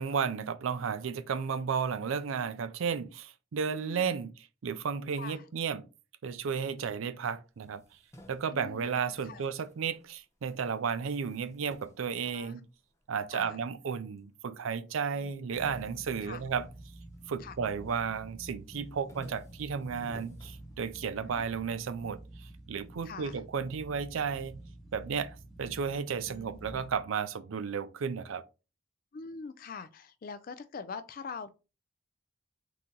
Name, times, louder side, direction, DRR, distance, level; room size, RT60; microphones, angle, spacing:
voice 1, 0.0-4.3 4.6-5.9 6.2-7.8 8.3-12.7 13.1-16.7 17.3-24.6 24.9-28.4, right 6 dB, 80° right, 0.4 m, -33 dB
voice 2, 3.7-4.0 5.2-5.4 8.5-9.4 12.2-12.5 13.3-13.6 15.1-15.3 16.2-16.4 17.4-17.6 21.3-21.4 23.0-23.4 26.3-26.8 29.1-31.5, left 5 dB, 45° left, 0.3 m, -44 dB
sound 1, 7.5-10.2 10.5-13.0 13.6-14.3 14.6-14.7 14.9-17.5 17.9-18.3 18.7-21.3, equal, 15° left, 0.7 m, -56 dB
sound 2, 15.5-27.0, right 1 dB, ahead, 1.3 m, -49 dB
3.8 x 2.9 x 3.7 m
head